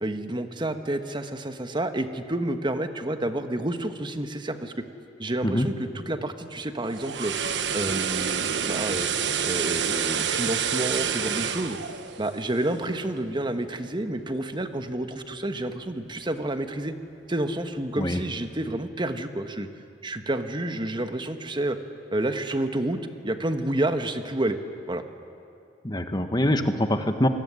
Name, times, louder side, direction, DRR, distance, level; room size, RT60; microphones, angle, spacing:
voice 1, 0.0-4.7 5.2-7.3 7.7-9.1 9.4-11.8 12.2-16.9 17.3-19.7 20.0-21.8 22.1-23.0 23.2-24.6 24.9-25.0, right 1 dB, 25° right, 8 dB, 1.3 m, -29 dB
sound 1, 6.8-13.0 13.3-13.5, right 7 dB, 85° right, 1.3 m, -28 dB
voice 2, 25.8-27.3, left 1 dB, 25° left, 7 dB, 1.6 m, -24 dB
27.0 x 20.5 x 9.8 m, 2.5 s
head